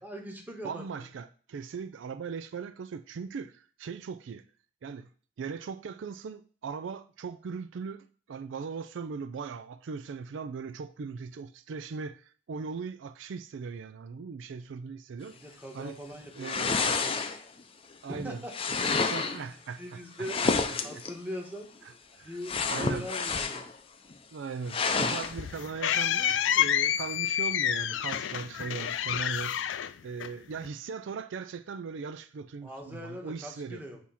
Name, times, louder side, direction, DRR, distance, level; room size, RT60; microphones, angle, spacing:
voice 1, 0.0-0.8 15.3-17.4 18.1-18.5 19.0-19.4 19.8-20.4 20.8-21.7 22.2-23.7 32.6-34.0, equal, 10° right, 1.2 m, -41 dB
voice 2, 0.6-4.4 4.8-5.1 5.4-15.3 15.7-16.0 16.4-16.8 18.0-18.4 18.7-20.0 20.9-21.0 22.1-22.3 22.7-23.1 24.3-33.8, right 5 dB, 85° right, 0.4 m, -39 dB
sound 1, 16.4-17.6 18.5-19.4 20.2-21.1 22.4-23.8 24.1-24.2 24.7-25.3, left 4 dB, 30° left, 0.5 m, -29 dB
sound 2, 24.8-30.7, left 10 dB, 80° left, 0.4 m, -29 dB
8.4 x 2.9 x 5.6 m
head